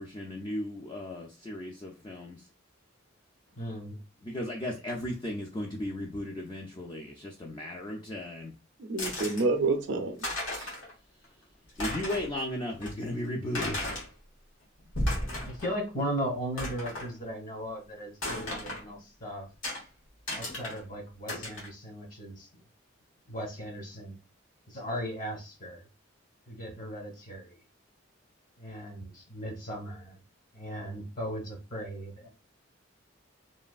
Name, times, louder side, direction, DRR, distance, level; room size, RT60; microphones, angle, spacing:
voice 1, 0.0-2.4 4.2-8.5 11.8-13.9, left 1 dB, 20° left, 0.3 m, -35 dB
voice 2, 3.5-4.0 15.5-19.5 20.3-22.6 23.2-24.2 24.7-25.8 26.5-27.6 28.6-30.2 30.5-32.3, equal, 40° left, 1.0 m, -37 dB
voice 3, 8.8-10.2 10.6-10.7, right 3 dB, 65° right, 0.5 m, -28 dB
sound 1, 9.0-9.4 9.9-10.0 10.2-10.9 11.2-11.3 11.7-12.3 12.8-12.9 13.5-14.1 14.8-15.7 16.0-16.1 16.6-17.1 18.2-18.8 19.6-19.8 20.3-20.8 21.3-21.7, left 1 dB, 90° left, 1.4 m, -34 dB
3.2 x 2.5 x 2.3 m
head